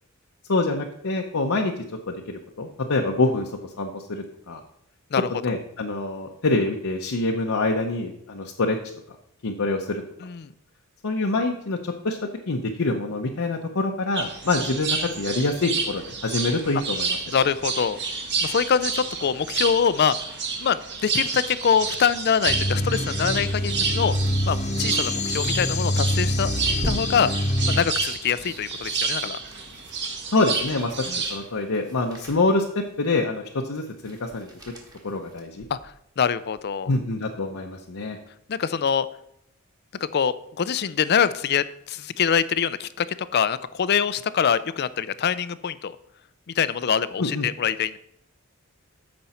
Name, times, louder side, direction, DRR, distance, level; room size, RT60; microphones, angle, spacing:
voice 1, 0.5-1.7 2.1-3.5 3.8-4.6 5.4-8.8 9.4-10.0 11.0-12.2 12.5-17.2 30.3-34.5 35.0-35.7 36.9-38.2 47.2-47.5, left 2 dB, 70° left, 1 dB, 0.8 m, -25 dB
sound 1, 14.1-31.4, right 4 dB, 55° right, 1.6 m, -30 dB
voice 2, 17.3-18.0 18.4-20.2 20.6-24.2 24.5-26.5 26.8-27.3 27.7-29.4 31.1-31.2 35.7-36.9 38.5-39.1 40.0-43.1 43.3-46.0 46.6-48.0, left 7 dB, 50° left, 15 dB, 0.4 m, -24 dB
sound 2, 22.5-27.8, left 1 dB, 35° left, 0.9 m, -25 dB
sound 3, 23.4-36.0 36.5-36.6, equal, 20° right, 1.6 m, -42 dB
14.0 x 5.3 x 4.3 m, 0.76 s
head